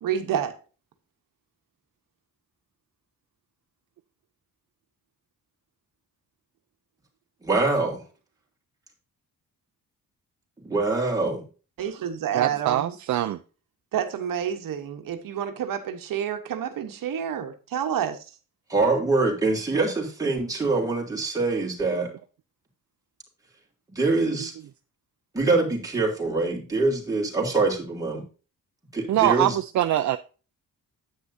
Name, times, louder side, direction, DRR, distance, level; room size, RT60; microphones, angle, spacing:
voice 1, 0.0-0.6 11.8-12.9 13.9-18.3, right 9 dB, 75° right, 1.1 m, -29 dB
voice 2, 7.4-8.0 10.6-11.4 18.7-22.1 23.9-24.5 25.3-28.2 28.9-29.6, right 3 dB, 10° right, 2.8 m, -24 dB
voice 3, 12.3-13.4 21.9-22.1 29.1-30.2, right 13 dB, 55° right, 0.5 m, -23 dB
9.9 x 8.5 x 2.7 m
wide cardioid pair, 165°, 34 cm